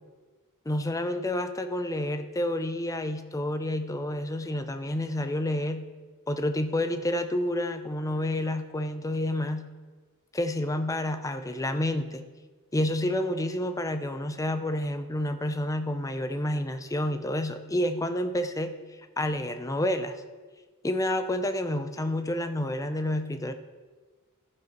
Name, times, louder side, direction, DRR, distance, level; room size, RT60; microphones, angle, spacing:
voice 1, 0.7-5.8 6.3-9.6 10.3-12.2 12.7-18.7 19.2-20.2 20.8-23.5, left 1 dB, 15° left, 8 dB, 0.5 m, -29 dB
14.0 x 5.2 x 5.2 m, 1.4 s
head